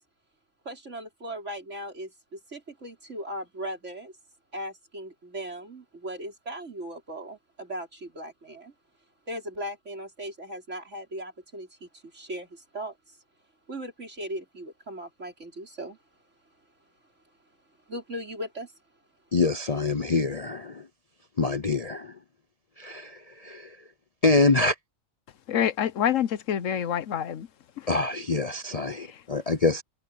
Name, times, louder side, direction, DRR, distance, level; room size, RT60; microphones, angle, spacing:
voice 1, 0.7-4.1 4.5-8.7 9.3-13.2 13.7-16.0 17.9-18.7, equal, 60° right, 5.5 m, -38 dB
voice 2, 19.3-20.9 21.4-22.2 22.8-23.8 24.2-24.7 27.9-29.8, left 3 dB, 35° left, 0.7 m, -25 dB
voice 3, 25.5-27.5 27.8-27.9 29.0-29.2, left 9 dB, 70° left, 1.2 m, -27 dB
omnidirectional pair, 1.4 m